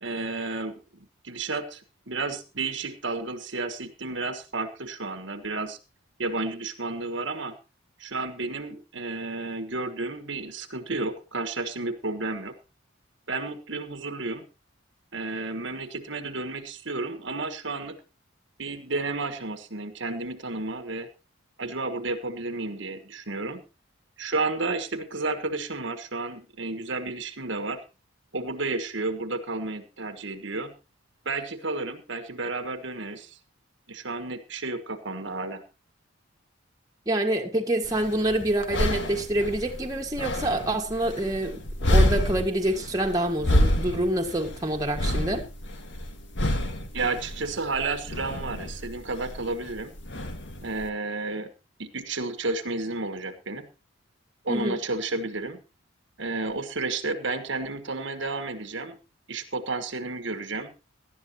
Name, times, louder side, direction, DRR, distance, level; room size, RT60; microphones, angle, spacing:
voice 1, 0.0-0.8 1.2-5.8 6.2-7.6 8.0-12.5 13.3-14.4 15.1-18.0 18.6-21.1 21.6-23.6 24.2-27.8 28.3-30.7 31.2-33.4 33.9-35.6 46.9-49.9 50.6-51.5 51.8-53.7 54.4-55.6 56.2-59.0 59.3-60.7, right 3 dB, 60° right, 1.4 m, -32 dB
voice 2, 37.0-41.6 41.9-45.4 54.5-54.8, right 1 dB, 20° right, 1.7 m, -26 dB
sound 1, 37.8-50.9, left 1 dB, 60° left, 1.8 m, -28 dB
18.5 x 12.0 x 2.9 m
head